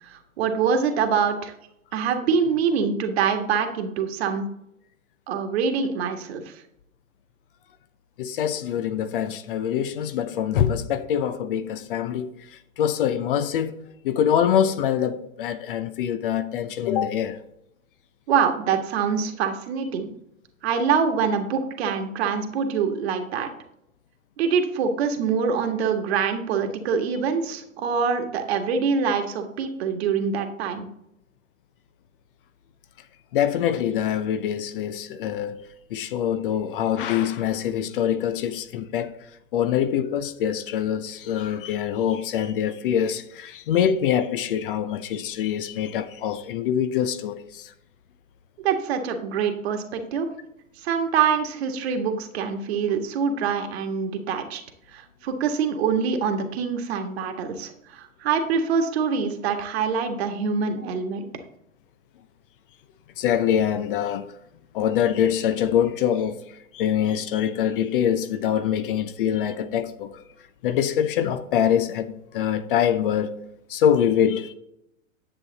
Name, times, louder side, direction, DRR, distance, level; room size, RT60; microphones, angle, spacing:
voice 1, 0.1-1.5 1.9-4.5 5.3-6.4 18.3-20.1 20.6-23.5 24.4-30.9 48.6-50.3 50.8-54.6 54.9-61.3, right 6 dB, 50° right, 1.6 m, -25 dB
voice 2, 8.2-12.3 12.8-13.8 14.0-17.4 33.3-35.6 35.9-39.1 39.5-47.7 63.2-64.3 64.7-66.4 66.7-70.2 70.6-73.3 73.7-74.5, left 9 dB, 40° left, 0.7 m, -24 dB
10.0 x 7.8 x 4.0 m
figure-of-eight pair, 105°, 41 cm